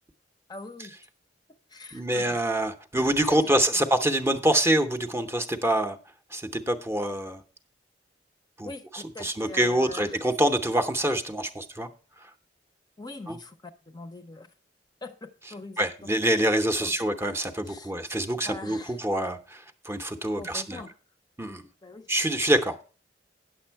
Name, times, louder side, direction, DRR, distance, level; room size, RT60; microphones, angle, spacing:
voice 1, 0.5-0.9 1.7-2.4 3.3-3.5 8.6-10.2 13.0-14.5 15.0-16.1 16.8-17.0 17.7-17.9 18.4-19.0 20.4-21.0 21.8-22.1, left 2 dB, 20° left, 0.6 m, -42 dB
voice 2, 1.9-6.0 6.3-7.4 8.6-11.9 13.3-13.4 15.8-20.9 21.4-21.6 22.1-22.8, right 1 dB, 15° right, 0.7 m, -26 dB
9.6 x 6.9 x 4.5 m
head